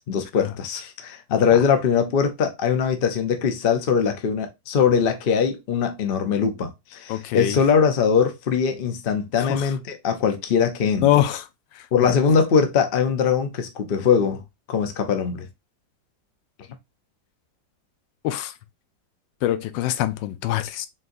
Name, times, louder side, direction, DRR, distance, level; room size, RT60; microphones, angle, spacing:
voice 1, 0.0-11.1 11.9-14.4 14.7-15.5, left 6 dB, 55° left, 0.6 m, -21 dB
voice 2, 7.1-7.6 9.4-9.6 11.0-11.4 18.2-18.5 19.4-20.9, left 13 dB, 85° left, 1.3 m, -23 dB
4.3 x 3.8 x 2.6 m
omnidirectional pair, 2.0 m